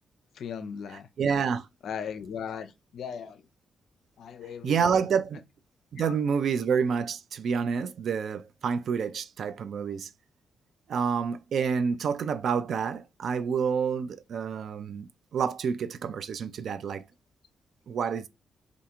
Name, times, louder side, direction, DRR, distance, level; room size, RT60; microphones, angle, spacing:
voice 1, 0.4-1.1 1.8-3.4 4.2-4.8 6.0-6.1, left 7 dB, 65° left, 0.4 m, -37 dB
voice 2, 0.9-1.7 4.6-5.4 5.9-10.1 10.9-17.0 17.9-18.3, right 6 dB, 65° right, 0.3 m, -28 dB
2.4 x 2.3 x 2.9 m
hypercardioid pair, 40°, 0 cm